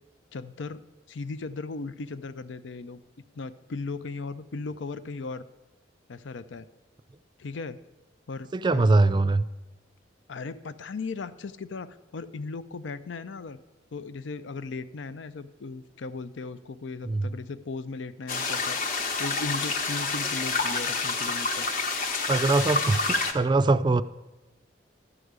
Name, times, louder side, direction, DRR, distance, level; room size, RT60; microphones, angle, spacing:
voice 1, 0.3-0.8 1.1-3.0 3.3-5.5 6.1-6.7 7.4-7.8 8.3-9.0 10.3-13.6 13.9-18.8 19.2-21.7, left 3 dB, 85° left, 14 dB, 0.5 m, -37 dB
voice 2, 8.5-9.4 17.0-17.3 22.3-24.0, right 3 dB, 25° right, 13 dB, 0.4 m, -22 dB
sound 1, 18.3-23.3, left 3 dB, 50° left, 1.0 m, -28 dB
12.5 x 4.9 x 8.0 m, 1.1 s
head